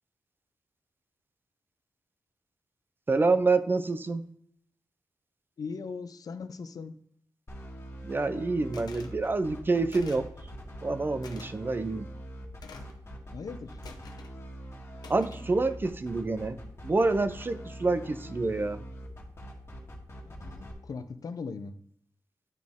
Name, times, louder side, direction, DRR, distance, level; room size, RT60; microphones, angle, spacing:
voice 1, 3.1-4.2 8.0-10.3 10.8-12.1 15.1-18.8, right 3 dB, 30° right, 12 dB, 0.5 m, -27 dB
voice 2, 5.6-6.9 13.3-13.8 20.2-21.7, left 5 dB, 65° left, 11 dB, 0.5 m, -39 dB
sound 1, 7.5-20.7, right 1 dB, 40° left, 1.7 m, -43 dB
sound 2, 8.7-9.1 9.9-10.3 11.2-11.5 12.6-13.0 13.8-14.3 15.0-15.5, left 5 dB, 80° left, 0.9 m, -48 dB
10.5 x 4.0 x 3.6 m, 0.66 s
wide cardioid pair, 90°, 7 cm